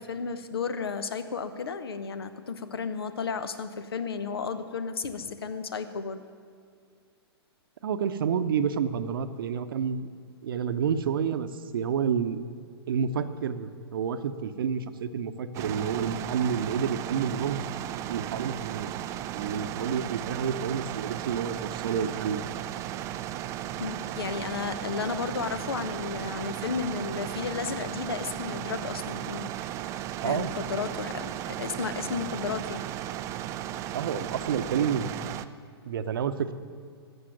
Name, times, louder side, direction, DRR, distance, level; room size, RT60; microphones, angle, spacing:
voice 1, 0.0-6.2 23.8-30.0 30.2-32.8, left 5 dB, 65° left, 11 dB, 1.0 m, -33 dB
voice 2, 7.8-10.1 10.4-11.5 11.7-12.4 12.9-17.7 18.0-18.9 19.3-22.5 30.2-30.5 33.9-35.1 35.8-36.5, right 7 dB, 55° right, 10 dB, 0.8 m, -29 dB
sound 1, 15.5-35.5, right 12 dB, 20° right, 0.4 m, -35 dB
13.5 x 8.2 x 9.1 m, 2.2 s
figure-of-eight pair, 115°, 14 cm